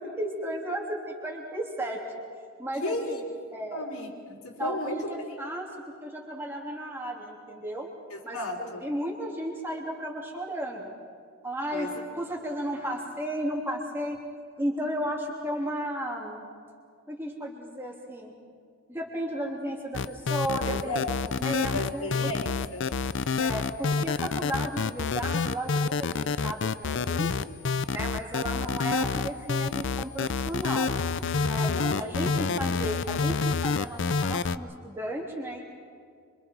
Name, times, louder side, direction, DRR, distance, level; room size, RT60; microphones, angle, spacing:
voice 1, 0.0-2.0 2.6-3.2 3.5-3.9 4.6-5.7 6.0-7.9 8.2-10.9 11.4-14.2 14.6-16.4 17.1-18.3 18.9-21.1 21.4-22.3 23.4-27.4 27.9-30.9 31.4-35.6, right 1 dB, 10° right, -2 dB, 3.2 m, -34 dB
voice 2, 2.8-3.2 3.7-5.0 8.1-8.8 11.7-12.0 20.7-21.1 21.7-22.8 31.6-32.5, left 1 dB, 85° left, -3 dB, 4.0 m, -34 dB
sound 1, 19.9-34.6, left 4 dB, 55° left, 0.5 m, -27 dB
26.0 x 25.5 x 4.7 m, 2.2 s
head